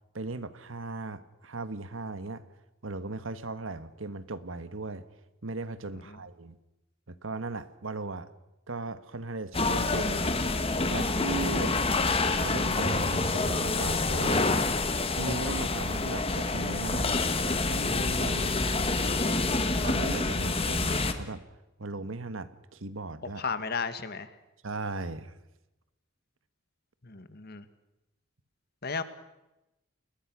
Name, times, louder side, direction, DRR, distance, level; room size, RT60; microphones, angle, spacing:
voice 1, 0.1-2.4 2.8-5.0 5.4-6.6 7.1-8.3 8.7-10.5 10.9-11.8 12.3-14.4 15.2-19.1 19.8-21.4 21.8-23.4 24.6-25.3, right 2 dB, 75° right, 13 dB, 1.4 m, -37 dB
sound 1, 9.5-21.1, left 3 dB, 30° left, 1.7 m, -27 dB
voice 2, 23.4-24.3 27.0-27.6 28.8-29.0, left 5 dB, 50° left, 12 dB, 1.7 m, -34 dB
29.5 x 21.0 x 6.2 m, 0.96 s
head